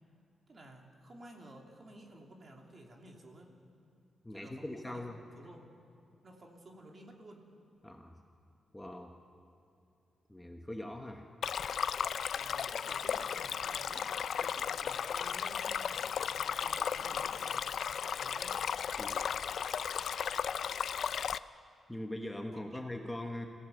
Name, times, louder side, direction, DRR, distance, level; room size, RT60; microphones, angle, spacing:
voice 1, 0.5-3.5 4.3-5.0 5.4-5.7 6.2-7.5 12.3-14.1 14.4-18.7, right 1 dB, 35° right, 1 dB, 2.7 m, -54 dB
voice 2, 4.2-5.1 7.8-8.2 8.7-9.1 10.3-11.3 19.0-19.3 21.9-23.5, left 1 dB, 10° left, 3 dB, 1.2 m, -41 dB
Stream, 11.4-21.4, left 7 dB, 65° left, 0.4 m, -35 dB
26.0 x 16.0 x 7.9 m, 2.5 s
wide cardioid pair, 135°, 0 cm